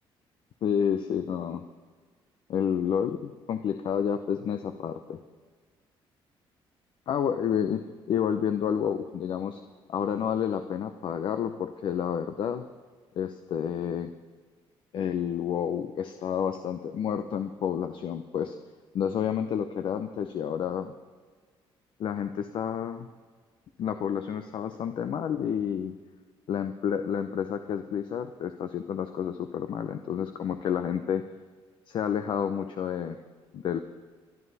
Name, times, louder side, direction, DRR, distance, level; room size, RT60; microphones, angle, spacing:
voice 1, 0.6-1.6 2.5-5.2 7.1-9.6 9.9-12.6 13.2-14.1 14.9-18.6 18.9-20.9 22.0-23.1 23.8-25.9 26.5-31.2 31.9-33.2 33.5-33.8, left 8 dB, 55° left, 8 dB, 0.8 m, -30 dB
25.5 x 11.0 x 4.1 m, 1.5 s
cardioid pair, 140°, 10 cm